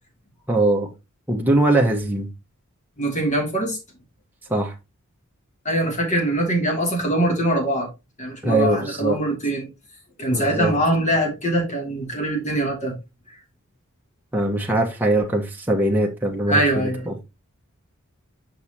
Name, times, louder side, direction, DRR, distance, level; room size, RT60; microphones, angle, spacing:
voice 1, 0.5-0.9 1.3-2.3 4.5-4.7 8.4-9.2 10.3-10.7 14.3-17.1, right 1 dB, 10° right, 1.2 m, -21 dB
voice 2, 3.0-3.8 5.6-7.9 8.2-9.7 10.2-13.0 16.5-17.1, right 1 dB, 35° left, 2.6 m, -23 dB
6.6 x 6.4 x 2.8 m
head